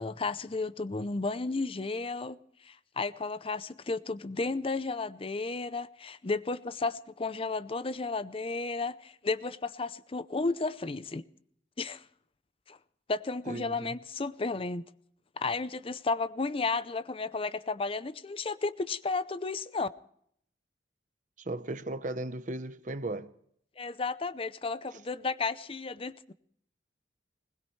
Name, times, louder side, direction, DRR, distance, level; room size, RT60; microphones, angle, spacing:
voice 1, 0.0-2.4 2.6-11.2 11.8-12.0 12.7-12.8 13.1-14.8 15.4-19.9 23.8-26.3, left 3 dB, 30° left, 0.6 m, -33 dB
voice 2, 13.5-14.0 21.4-23.3 24.9-25.0, right 2 dB, 45° right, 0.9 m, -36 dB
21.0 x 19.5 x 3.2 m
head